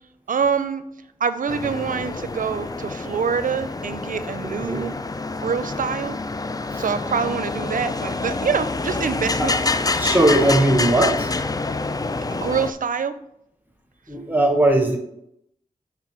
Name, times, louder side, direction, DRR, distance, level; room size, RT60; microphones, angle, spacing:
voice 1, 0.3-0.8 1.2-5.0 5.4-6.2 6.8-9.5 12.3-13.1, right 6 dB, 65° right, 12 dB, 0.5 m, -25 dB
sound 1, 1.5-12.7, left 3 dB, 25° left, 0.4 m, -27 dB
voice 2, 9.9-11.3 14.1-15.0, right 1 dB, 10° right, 3 dB, 1.0 m, -19 dB
6.0 x 4.7 x 4.4 m, 0.78 s
cardioid pair, 45°, 15 cm